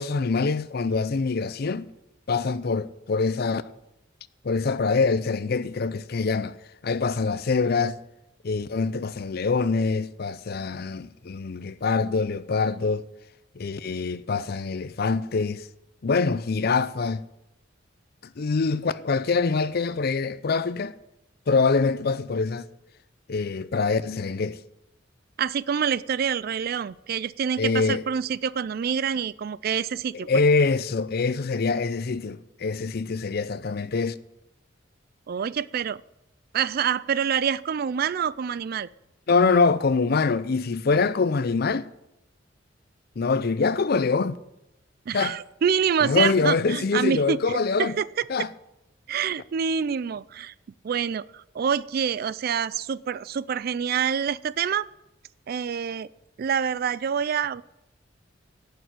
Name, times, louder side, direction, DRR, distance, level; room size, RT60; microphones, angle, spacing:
voice 1, 0.0-1.9 2.3-3.6 4.4-6.5 6.8-8.0 8.4-13.1 13.6-15.7 16.0-17.2 18.4-21.0 21.5-22.7 23.3-24.6 27.6-28.0 30.1-34.2 39.3-41.9 43.2-44.4 45.1-45.3 46.0-47.9 48.3-48.5, left 4 dB, 55° left, 0.5 m, -24 dB
voice 2, 25.4-30.3 35.3-36.0 36.5-38.9 40.9-41.1 45.1-48.2 49.1-50.5 50.8-54.9 55.5-56.1 56.4-57.6, right 7 dB, 50° right, 0.4 m, -26 dB
11.0 x 6.8 x 9.1 m
head